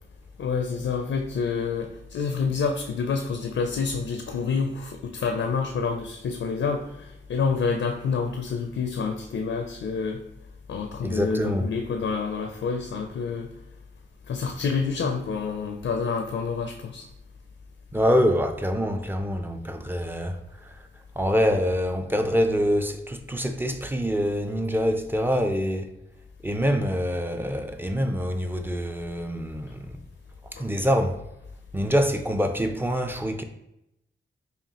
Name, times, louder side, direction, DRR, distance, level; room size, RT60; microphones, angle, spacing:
voice 1, 0.4-10.2 10.7-13.5 14.3-17.0 30.6-30.7, left 5 dB, 75° left, 0.4 m, -28 dB
voice 2, 11.0-11.7 17.9-20.4 20.7-20.8 21.2-25.9 26.4-30.0 30.6-31.2 31.7-33.4, equal, 10° right, 0.4 m, -25 dB
5.0 x 2.4 x 2.8 m
cardioid pair, 65°, 21 cm